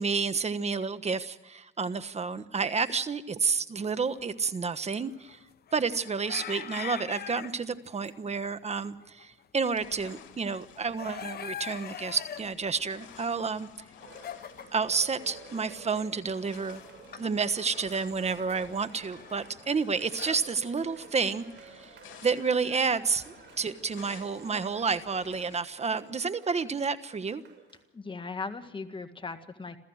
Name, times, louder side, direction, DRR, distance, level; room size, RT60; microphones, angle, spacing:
voice 1, 0.0-5.4 5.7-13.7 14.7-16.8 17.1-27.4, right 5 dB, 35° right, 13 dB, 1.3 m, -30 dB
sound 1, 3.8-4.6 5.0-8.4 8.7-9.4 9.8-9.9 10.1-14.9 15.2-15.3 15.8-15.9 16.1-20.4, left 9 dB, 50° left, 0.9 m, -43 dB
sound 2, 9.7-25.6, left 8 dB, 80° left, 3.2 m, -53 dB
Cheering, 14.0-27.8, right 6 dB, 65° right, 6.4 m, -52 dB
voice 2, 27.9-29.8, left 4 dB, 25° left, 9 dB, 1.7 m, -38 dB
27.5 x 15.0 x 6.4 m, 1.0 s
cardioid pair, 90°, 20 cm